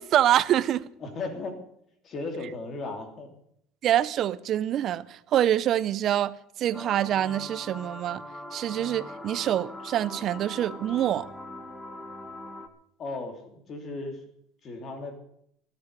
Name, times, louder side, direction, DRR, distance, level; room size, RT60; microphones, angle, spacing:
voice 1, 0.0-0.9 3.8-6.3 6.6-8.2 8.5-11.3, right 11 dB, 40° right, 0.6 m, -25 dB
voice 2, 1.0-1.6 2.0-3.3 13.0-14.2 14.6-15.2, left 3 dB, 35° left, 3.0 m, -36 dB
sound 1, 6.7-12.7, left 1 dB, 5° left, 1.1 m, -41 dB
13.5 x 11.0 x 6.7 m
cardioid pair, 145°, 0 cm